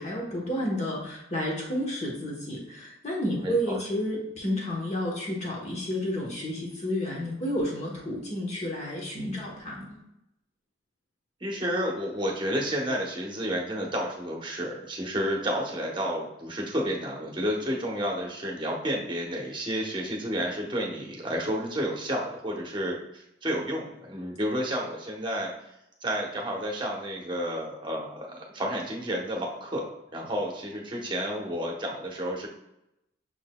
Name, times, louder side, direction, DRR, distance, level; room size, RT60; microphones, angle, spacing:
voice 1, 0.0-9.9, equal, 35° left, -2 dB, 1.0 m, -31 dB
voice 2, 3.4-3.8 11.4-25.5 26.0-32.5, equal, 25° right, -1 dB, 0.9 m, -31 dB
6.2 x 3.9 x 2.2 m, 0.85 s
head